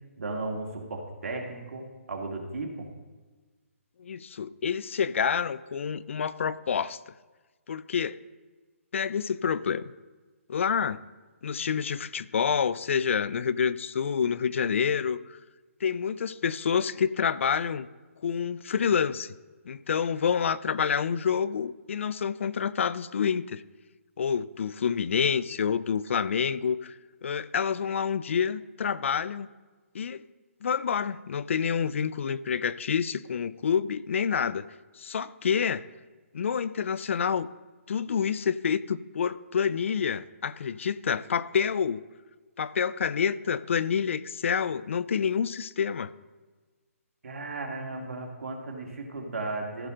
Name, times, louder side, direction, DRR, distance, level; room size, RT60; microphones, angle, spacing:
voice 1, 0.2-2.9 47.2-49.9, right 2 dB, 70° right, 1 dB, 2.0 m, -35 dB
voice 2, 4.0-7.0 7.7-8.2 8.9-9.9 10.5-11.0 11.4-15.4 15.8-17.9 18.2-19.3 19.7-23.6 24.2-26.9 27.2-29.5 29.9-30.2 30.6-34.6 35.0-35.8 36.3-37.5 37.9-42.0 42.6-46.1, left 7 dB, 60° left, 18 dB, 0.4 m, -28 dB
15.0 x 6.3 x 3.7 m, 1.3 s
hypercardioid pair, 160°, 8 cm